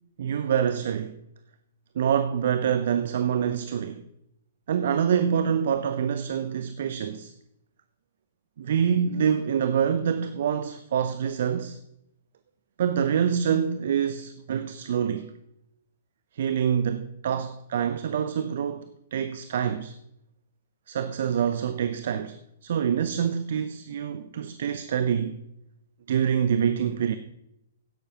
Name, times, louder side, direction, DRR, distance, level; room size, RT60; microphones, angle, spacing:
voice 1, 0.2-1.2 2.0-4.0 4.7-7.3 8.6-11.8 12.8-15.3 16.3-19.9 20.9-25.4 26.1-27.2, right 8 dB, 60° right, 0.6 m, -26 dB
16.0 x 11.0 x 2.9 m
figure-of-eight pair, 110°, 0 cm